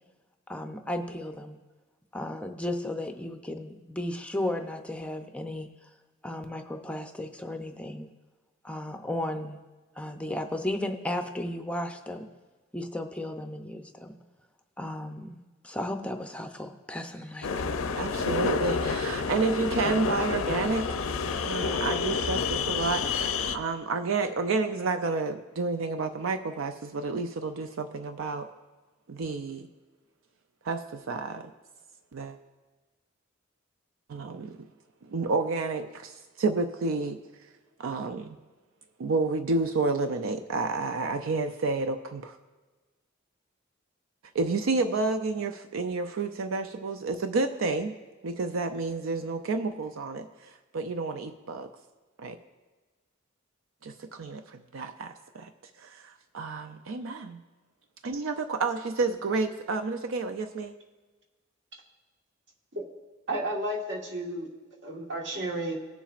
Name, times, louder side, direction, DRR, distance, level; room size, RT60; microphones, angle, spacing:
voice 1, 0.5-1.6 2.1-5.7 6.2-8.1 8.6-9.6 10.0-12.2 12.7-14.2 14.8-17.5, left 1 dB, 5° left, 5 dB, 0.5 m, -34 dB
sound 1, 17.4-23.6, left 5 dB, 90° left, 0.6 m, -29 dB
voice 2, 18.0-21.0 21.4-28.5 29.1-29.7 30.6-31.5 32.1-32.4 34.1-34.7 35.0-37.2 37.8-38.4 39.0-42.4 44.3-47.9 48.2-51.7 52.2-52.4 53.8-55.5 55.8-57.4 58.0-60.7, right 3 dB, 80° right, 7 dB, 0.5 m, -30 dB
voice 3, 63.3-64.5 64.8-65.8, right 1 dB, 60° right, -1 dB, 1.6 m, -32 dB
19.0 x 7.1 x 2.5 m, 1.3 s
head